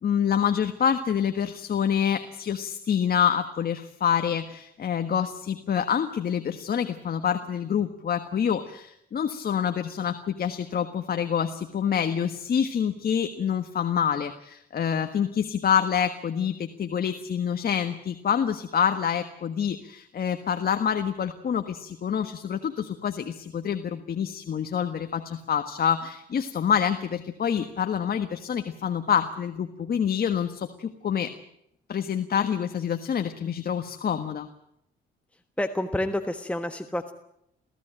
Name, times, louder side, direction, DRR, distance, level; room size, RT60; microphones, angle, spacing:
voice 1, 0.0-31.3 31.9-34.5, left 8 dB, 50° left, 7 dB, 1.5 m, -27 dB
voice 2, 35.6-37.1, left 1 dB, 5° left, 7 dB, 1.3 m, -29 dB
24.0 x 15.5 x 9.0 m, 0.77 s
cardioid pair, 90°, 20 cm